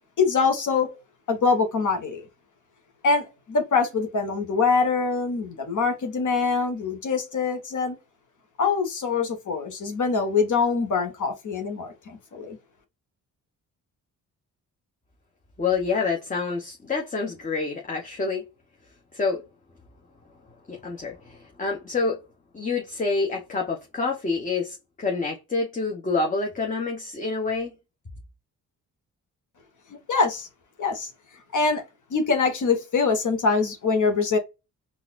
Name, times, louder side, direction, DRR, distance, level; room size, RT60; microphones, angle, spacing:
voice 1, 0.2-0.9 1.3-2.2 3.0-8.0 8.6-12.6 29.9-30.5 30.8-31.1 31.5-31.8 32.1-34.4, left 4 dB, 60° left, 1.2 m, -24 dB
voice 2, 15.6-18.4 19.1-19.4 20.7-22.2 22.5-27.7, left 4 dB, 20° left, 0.8 m, -27 dB
3.9 x 2.5 x 2.4 m
cardioid pair, 85°, 35 cm